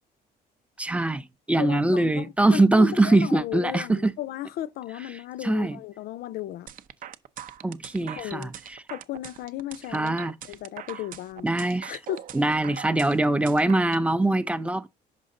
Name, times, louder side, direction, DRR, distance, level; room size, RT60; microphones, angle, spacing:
voice 1, 0.8-4.1 5.4-5.8 7.6-8.5 9.9-10.3 11.4-12.0 12.3-14.9, right 2 dB, 5° right, 0.6 m, -22 dB
voice 2, 1.6-6.7 8.1-8.5 8.9-10.2 10.4-11.5 11.9-12.2 13.4-13.5, left 13 dB, 70° left, 0.5 m, -35 dB
sound 1, 6.7-14.1, right 10 dB, 55° right, 0.7 m, -41 dB
6.5 x 5.2 x 3.8 m
cardioid pair, 110°, 17 cm